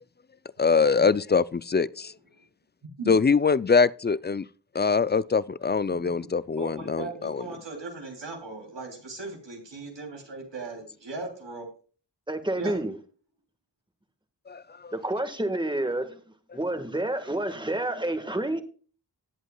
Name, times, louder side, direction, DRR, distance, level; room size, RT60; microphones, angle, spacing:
voice 1, 0.6-2.1 3.1-4.5 4.7-7.4 14.5-14.9, left 5 dB, 25° left, 0.3 m, -23 dB
voice 2, 6.6-11.7 12.6-12.8, right 3 dB, 90° right, 3.2 m, -38 dB
voice 3, 12.3-12.9 14.9-16.2 16.5-18.6, right 1 dB, 10° right, 1.5 m, -29 dB
18.5 x 8.0 x 2.3 m
cardioid pair, 45°, 42 cm